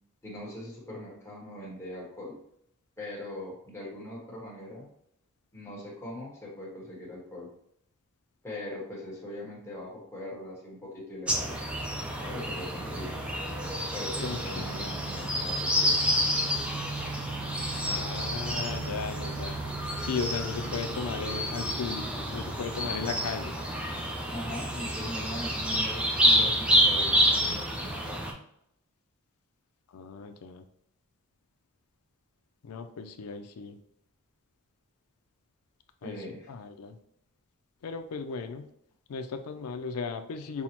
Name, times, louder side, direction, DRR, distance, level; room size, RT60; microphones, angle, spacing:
voice 1, 0.2-2.3 3.0-4.9 5.5-7.5 8.4-11.6 12.2-13.1 13.9-16.0 24.3-28.2 36.0-36.5, left 1 dB, 10° left, -5 dB, 1.1 m, -41 dB
sound 1, 11.3-28.3, equal, 5° right, 0.4 m, -29 dB
voice 2, 14.2-14.8 17.9-19.6 20.0-23.6 29.9-30.6 32.6-33.8 36.0-36.2 36.5-37.0 37.8-38.7 39.1-40.6, left 5 dB, 85° left, 8 dB, 0.4 m, -36 dB
5.4 x 2.1 x 2.9 m, 0.74 s
head